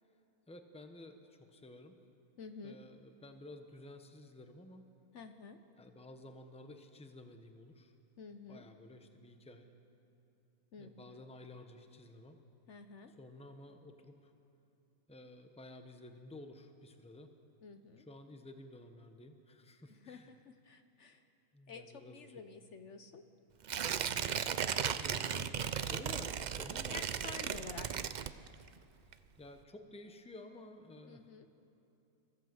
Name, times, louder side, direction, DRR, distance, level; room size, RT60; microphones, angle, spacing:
voice 1, 0.5-2.0 2.6-4.9 5.8-7.9 8.5-9.7 10.8-12.4 13.1-14.3 15.1-17.3 18.0-20.4 21.5-22.4 24.9-27.3 29.4-31.3, left 1 dB, 5° left, 6 dB, 1.0 m, -53 dB
voice 2, 2.4-2.8 5.1-5.6 8.2-8.7 10.7-11.2 12.7-13.1 17.6-18.1 20.1-21.2 21.7-23.2 26.9-27.9 31.1-31.5, left 4 dB, 60° left, 8 dB, 1.1 m, -50 dB
Tearing, 23.6-28.8 29.1-29.2, right 8 dB, 75° right, 0.4 m, -36 dB
25.0 x 15.0 x 7.8 m, 2.8 s
omnidirectional pair, 1.5 m